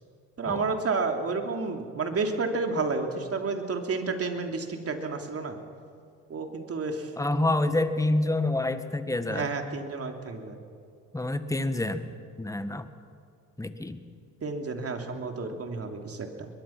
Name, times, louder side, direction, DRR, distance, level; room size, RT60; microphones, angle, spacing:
voice 1, 0.4-5.6 6.3-7.1 9.3-10.6 14.4-16.5, right 4 dB, 40° right, 4 dB, 3.2 m, -31 dB
voice 2, 7.2-9.5 11.1-12.1 12.4-12.9 13.6-14.0, left 2 dB, 10° left, 10 dB, 1.6 m, -27 dB
22.0 x 22.0 x 6.0 m, 2.4 s
supercardioid pair, 80°, 38 cm